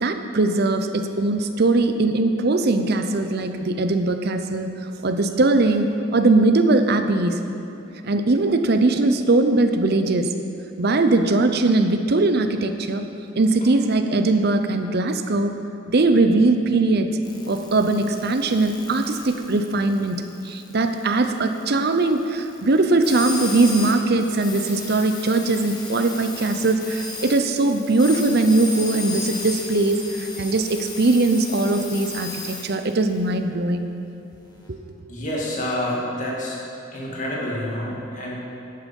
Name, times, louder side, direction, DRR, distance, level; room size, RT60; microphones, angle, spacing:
voice 1, 0.0-4.7 5.0-7.4 8.0-10.3 10.8-13.0 13.4-15.6 15.9-17.1 17.4-33.9 34.7-34.8, right 2 dB, 50° right, 8 dB, 0.6 m, -20 dB
sound 1, 17.2-33.1 34.6-34.7, left 3 dB, 20° left, 1.2 m, -36 dB
voice 2, 35.1-36.6 36.9-38.4, left 1 dB, 40° left, -4 dB, 2.1 m, -28 dB
11.0 x 9.1 x 5.4 m, 2.8 s
head